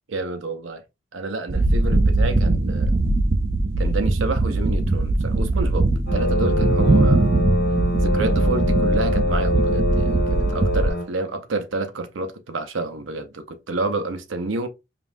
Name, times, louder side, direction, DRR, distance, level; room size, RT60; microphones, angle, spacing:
voice 1, 0.1-0.8 1.1-2.9 3.8-7.3 8.0-14.7, right 2 dB, 85° right, 0.7 m, -29 dB
sound 1, 1.5-10.9, right 2 dB, 35° right, 0.5 m, -20 dB
sound 2, 6.1-11.0, left 1 dB, 55° left, 1.3 m, -24 dB
5.2 x 2.5 x 2.6 m
head